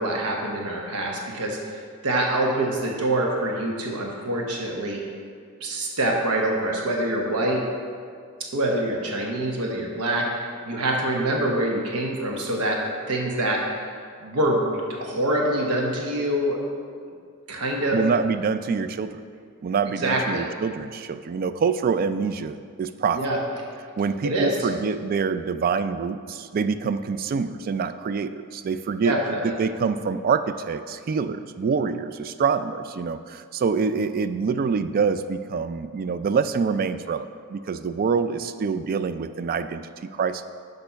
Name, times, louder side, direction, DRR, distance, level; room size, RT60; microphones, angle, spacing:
voice 1, 0.0-5.0 5.6-7.6 8.5-13.6 14.2-16.6 17.5-18.0 20.0-20.4 23.1-23.4 24.2-24.7 29.0-29.5, right 1 dB, 90° right, 0 dB, 1.0 m, -25 dB
voice 2, 17.9-19.2 19.6-23.2 24.0-29.2 29.4-40.4, right 5 dB, 40° right, 12 dB, 0.3 m, -26 dB
6.7 x 5.3 x 5.7 m, 2.2 s
head